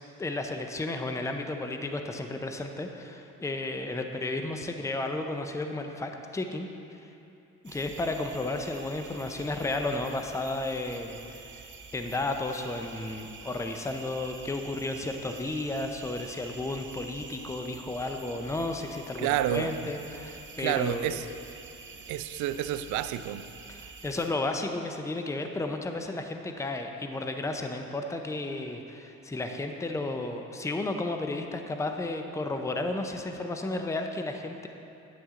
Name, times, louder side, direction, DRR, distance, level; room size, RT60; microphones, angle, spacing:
voice 1, 0.2-6.7 7.0-7.1 7.6-11.6 11.9-21.2 23.7-34.7, left 2 dB, 10° left, 5 dB, 0.6 m, -33 dB
sound 1, 7.6-24.3, right 4 dB, 40° right, 1.0 m, -47 dB
voice 2, 19.2-19.7 20.6-21.2 22.1-23.4, right 12 dB, 80° right, 12 dB, 0.5 m, -29 dB
9.3 x 8.6 x 3.7 m, 2.8 s
cardioid pair, 95°, 29 cm